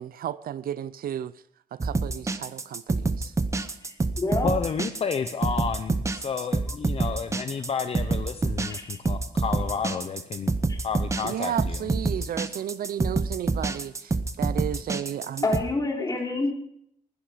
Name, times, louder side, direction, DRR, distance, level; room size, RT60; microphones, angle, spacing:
voice 1, 0.0-1.3 1.7-3.3 11.2-15.5, right 10 dB, 65° right, 0.6 m, -33 dB
sound 1, 1.8-15.6, right 3 dB, 20° right, 0.8 m, -27 dB
voice 2, 3.8-4.5 8.7-9.0 10.7-10.8 15.4-16.5, left 2 dB, 20° left, 3.5 m, -28 dB
voice 3, 4.4-10.6 10.8-11.9, left 6 dB, 40° left, 0.8 m, -31 dB
20.0 x 11.5 x 5.1 m
wide cardioid pair, 165°, 16 cm